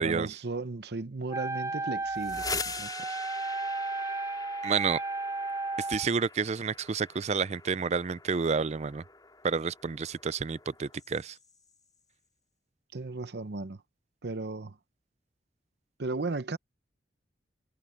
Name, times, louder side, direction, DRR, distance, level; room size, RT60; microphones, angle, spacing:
voice 1, 0.0-3.2 12.9-13.8 14.2-14.8 16.0-16.6, right 3 dB, 65° right, 0.8 m, -36 dB
Wind instrument woodwind instrument, 1.3-6.1, right 3 dB, 20° right, 1.8 m, -34 dB
sound 1, 2.0-11.7, left 4 dB, 25° left, 5.1 m, -43 dB
voice 2, 4.6-5.0 5.9-9.0 9.4-11.4, right 5 dB, 40° right, 0.4 m, -29 dB
head